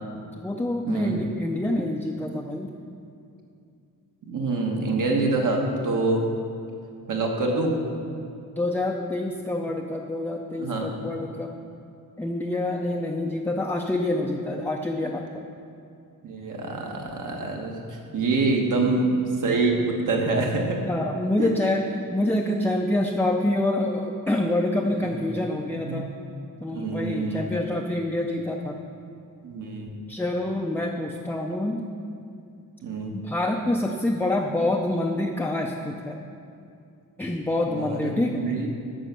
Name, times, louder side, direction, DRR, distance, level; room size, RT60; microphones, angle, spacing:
voice 1, 0.3-2.7 8.6-11.5 12.2-15.5 20.9-21.8 22.1-26.1 26.6-28.8 30.1-31.9 33.1-36.2 37.2-38.4, left 1 dB, 5° left, 1 dB, 0.5 m, -26 dB
voice 2, 0.9-1.2 4.3-6.2 7.1-7.7 10.6-11.1 16.2-20.8 21.4-21.5 25.8-26.0 26.7-27.4 29.4-29.9 32.8-33.1 37.7-38.0 38.3-38.7, right 3 dB, 60° right, 1 dB, 1.6 m, -25 dB
9.9 x 6.1 x 6.9 m, 2.5 s
wide cardioid pair, 155°, 34 cm